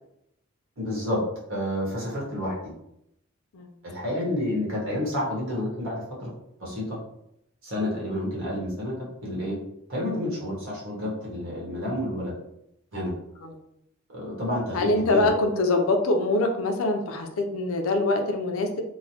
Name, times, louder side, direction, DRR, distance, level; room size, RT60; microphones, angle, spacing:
voice 1, 0.8-1.2 1.5-2.7 3.8-6.3 6.6-7.0 7.6-9.0 9.2-9.6 9.9-12.3 12.9-13.1 14.1-15.3, left 1 dB, 70° right, -5 dB, 1.1 m, -29 dB
voice 2, 14.7-18.8, left 2 dB, 85° left, 5 dB, 0.5 m, -24 dB
3.0 x 2.1 x 2.8 m, 0.80 s
head